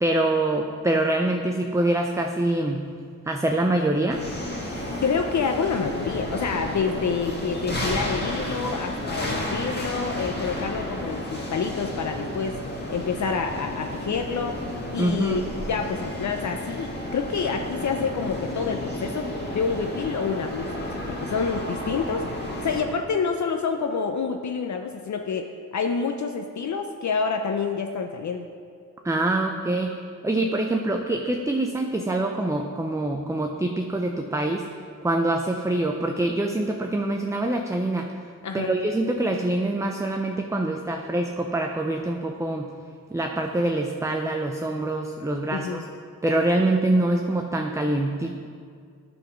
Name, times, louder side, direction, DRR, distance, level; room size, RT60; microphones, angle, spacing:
voice 1, 0.0-2.9 3.3-4.3 15.0-15.4 29.0-34.7 35.0-38.1 38.5-42.7 43.1-45.8 46.2-48.4, right 2 dB, 10° right, 3 dB, 0.5 m, -25 dB
sound 1, 4.1-22.8, left 1 dB, 30° left, 1.9 m, -32 dB
voice 2, 5.0-12.6 12.9-14.6 14.9-15.4 15.7-20.7 20.9-22.2 22.6-25.5 25.7-28.5 38.4-38.7 45.5-45.8, left 5 dB, 60° left, 5 dB, 0.6 m, -28 dB
11.0 x 4.2 x 5.8 m, 2.2 s
cardioid pair, 90°, 33 cm